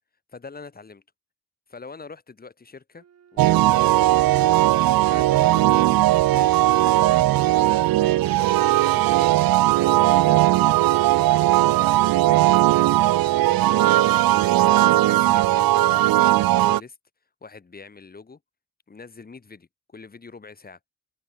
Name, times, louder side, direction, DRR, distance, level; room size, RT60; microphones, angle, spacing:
voice 1, 0.3-1.0 1.7-3.0 3.3-4.2 5.0-9.5 9.8-17.0 17.4-18.4 18.9-20.8, left 4 dB, 25° left, 5.0 m, -44 dB
Wind instrument woodwind instrument, 2.9-7.8, right 8 dB, 50° right, 5.9 m, -55 dB
sound 1, 3.4-16.8, right 16 dB, 80° right, 0.8 m, -18 dB
sound 2, 4.1-16.0, left 9 dB, 60° left, 7.5 m, -51 dB
cardioid pair, 135°, 34 cm